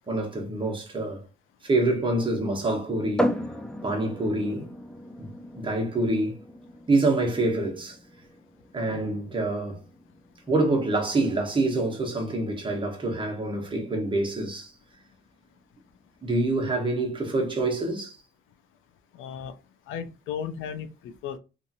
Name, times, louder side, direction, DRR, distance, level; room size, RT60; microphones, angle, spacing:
voice 1, 0.1-1.3 1.6-3.4 3.8-4.7 5.2-6.3 6.9-8.0 8.7-9.8 10.5-14.7 16.2-18.2, right 2 dB, 25° right, 1.0 m, -26 dB
sound 1, 3.2-16.7, equal, 5° left, 0.4 m, -37 dB
voice 2, 19.1-19.5 19.9-21.4, left 7 dB, 85° left, 0.5 m, -35 dB
2.7 x 2.5 x 2.7 m
cardioid pair, 90°, 20 cm